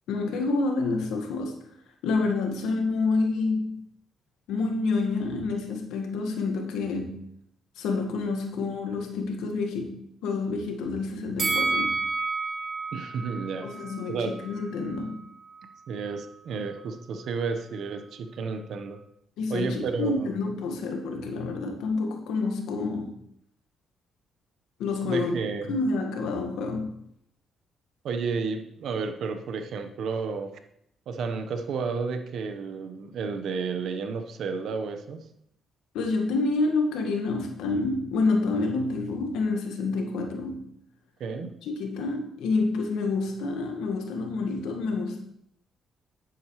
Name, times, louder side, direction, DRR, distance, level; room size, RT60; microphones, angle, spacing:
voice 1, 0.1-1.6 2.0-3.8 4.5-7.3 7.8-12.0 13.6-15.2 19.4-23.3 24.8-25.4 25.7-26.9 35.9-40.7 41.6-45.2, left 3 dB, 90° left, 3 dB, 1.7 m, -28 dB
Bell, 11.4-14.6 14.9-15.1, right 3 dB, 50° right, 2.1 m, -30 dB
voice 2, 12.9-13.7 14.1-14.4 15.9-19.0 19.5-20.3 25.0-25.8 28.0-30.6 31.1-35.2 41.2-41.5, right 5 dB, 70° right, 7 dB, 1.2 m, -31 dB
10.5 x 9.0 x 3.3 m, 0.74 s
cardioid pair, 90°, 0 cm